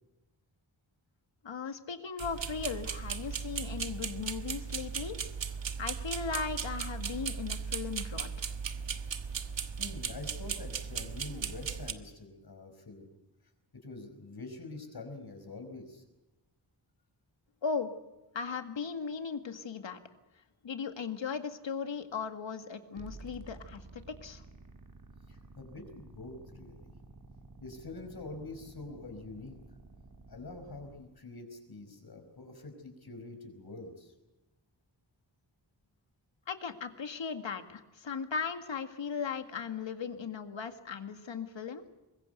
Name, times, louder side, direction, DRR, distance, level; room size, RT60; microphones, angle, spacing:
voice 1, 1.4-5.2 5.5-8.5 17.6-17.9 18.3-20.0 20.6-24.4 36.5-41.9, left 5 dB, 85° left, 8 dB, 2.0 m, -37 dB
sound 1, 2.2-11.9, right 6 dB, 85° right, 1.4 m, -37 dB
voice 2, 9.8-13.1 13.8-16.0 25.3-26.9 27.6-29.6 30.3-34.1, left 3 dB, 55° left, 6 dB, 5.3 m, -45 dB
sound 2, 23.0-31.0, right 3 dB, 50° right, 2.9 m, -52 dB
24.0 x 21.0 x 8.1 m, 1.0 s
wide cardioid pair, 110°, 44 cm